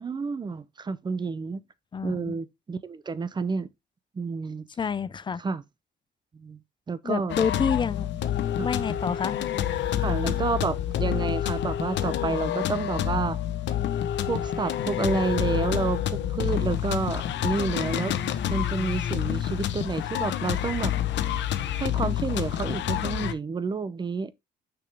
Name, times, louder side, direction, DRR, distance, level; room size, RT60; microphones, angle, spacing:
voice 1, 0.0-1.6 2.0-3.7 4.2-4.6 5.4-5.6 6.3-6.6 6.9-7.4 8.6-8.7 10.0-13.4 14.3-18.1 18.5-20.9 21.8-24.3, right 4 dB, 25° right, 0.6 m, -29 dB
voice 2, 1.9-2.3 4.8-5.4 7.0-8.1 8.6-9.4, left 6 dB, 25° left, 0.4 m, -28 dB
sound 1, 7.3-23.3, left 11 dB, 75° left, 0.9 m, -28 dB
6.2 x 6.0 x 3.4 m
cardioid pair, 140°, 19 cm